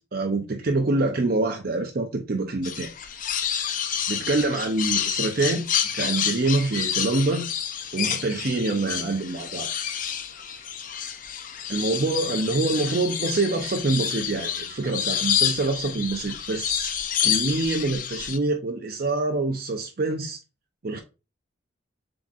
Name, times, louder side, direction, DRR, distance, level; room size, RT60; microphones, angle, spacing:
voice 1, 0.1-2.9 4.1-5.6 5.9-7.5 7.9-9.7 11.7-17.0 17.2-20.4 20.8-21.0, right 2 dB, 50° right, 0.6 m, -25 dB
sound 1, 2.6-18.4, left 9 dB, 45° left, 0.5 m, -29 dB
7.2 x 2.9 x 2.4 m
head